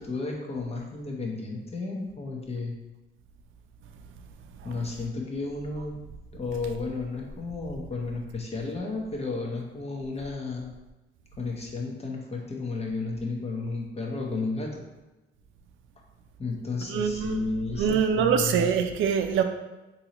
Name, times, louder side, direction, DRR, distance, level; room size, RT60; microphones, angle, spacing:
voice 1, 0.0-2.8 4.6-6.0 6.3-10.7 11.4-14.8 16.4-18.7, left 3 dB, 30° left, 0 dB, 0.9 m, -33 dB
voice 2, 16.9-17.4 17.8-19.4, right 7 dB, 80° right, 6 dB, 0.4 m, -24 dB
3.8 x 2.8 x 2.9 m, 1.1 s
cardioid pair, 90°, 20 cm